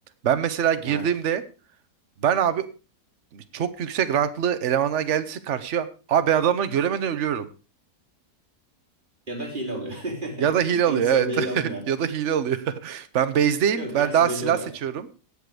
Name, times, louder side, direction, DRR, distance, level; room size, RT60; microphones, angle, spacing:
voice 1, 0.2-1.4 2.2-2.7 3.3-7.5 10.4-15.1, right 9 dB, 50° right, 11 dB, 1.2 m, -23 dB
voice 2, 9.3-11.9 13.7-14.7, right 1 dB, 30° right, -1 dB, 3.9 m, -32 dB
17.0 x 6.9 x 4.9 m, 0.33 s
omnidirectional pair, 1.7 m